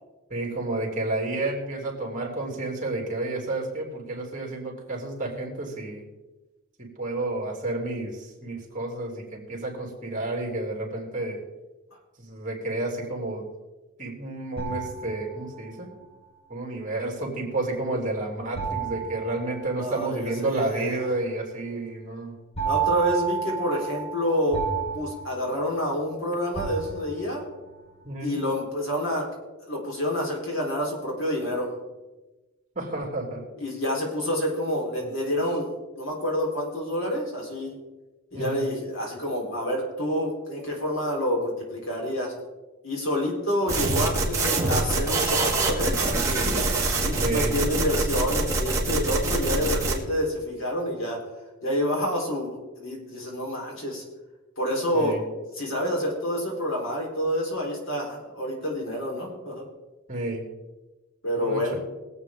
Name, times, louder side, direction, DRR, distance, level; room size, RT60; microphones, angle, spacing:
voice 1, 0.3-6.1 6.8-11.4 12.2-13.4 14.0-15.9 16.5-22.3 28.0-28.4 32.7-33.4 35.0-35.1 38.3-38.7 47.2-47.6 54.9-55.2 60.1-60.4 61.3-61.8, right 2 dB, 35° right, 0 dB, 3.1 m, -30 dB
sound 1, 14.6-15.8 18.6-20.2 22.6-26.1 26.6-27.5, right 7 dB, 30° left, 3.8 m, -31 dB
voice 2, 19.8-21.0 22.6-24.6 24.9-27.4 28.2-29.3 29.7-31.7 33.6-37.7 38.3-42.3 42.8-51.2 51.6-54.0 54.6-55.2 55.6-59.7 61.2-61.8, equal, 65° left, -1 dB, 3.9 m, -28 dB
sound 2, 43.7-49.9, right 3 dB, 15° right, 2.2 m, -25 dB
22.0 x 8.2 x 3.7 m, 1.1 s
head